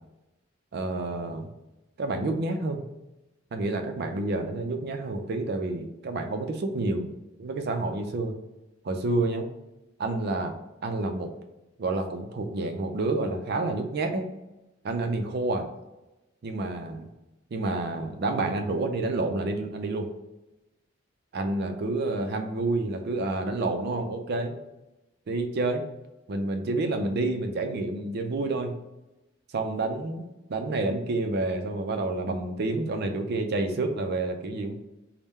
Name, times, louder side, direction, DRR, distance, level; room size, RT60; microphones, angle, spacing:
voice 1, 0.7-1.5 2.0-2.8 3.5-7.1 7.4-8.4 8.8-9.5 10.0-11.3 11.8-14.3 14.8-15.7 16.4-17.1 17.5-20.1 21.3-24.6 25.3-25.8 26.3-28.7 29.5-34.7, right 2 dB, 55° right, 6 dB, 0.4 m, -29 dB
3.5 x 2.1 x 4.1 m, 1.0 s
head